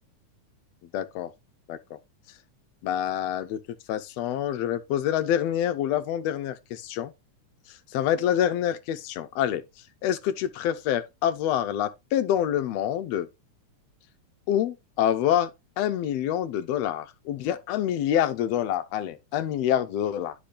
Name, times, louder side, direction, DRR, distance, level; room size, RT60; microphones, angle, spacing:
voice 1, 0.9-1.3 1.7-2.0 2.8-3.6 3.9-7.1 7.9-9.6 10.0-13.3 14.5-15.5 15.8-20.3, left 10 dB, 80° left, 1.5 m, -26 dB
10.0 x 5.2 x 2.4 m
omnidirectional pair, 3.4 m